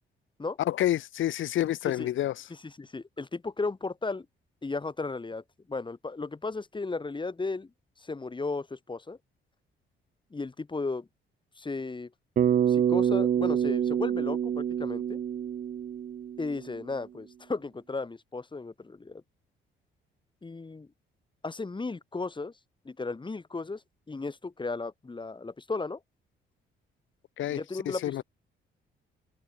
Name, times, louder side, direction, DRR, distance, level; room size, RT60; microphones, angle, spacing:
voice 1, 0.7-2.4 27.4-27.6 27.9-28.2, left 12 dB, 75° left, 3.5 m, -28 dB
voice 2, 2.6-4.3 4.6-5.4 5.7-7.7 8.0-9.2 10.3-11.1 11.6-12.1 12.7-15.2 16.4-19.2 20.4-20.9 21.4-22.5 22.9-23.8 24.1-26.0 27.5-28.2, left 3 dB, 25° left, 6.9 m, -35 dB
Bass guitar, 12.4-16.7, right 9 dB, 45° right, 0.6 m, -27 dB
cardioid pair, 90°, 20 cm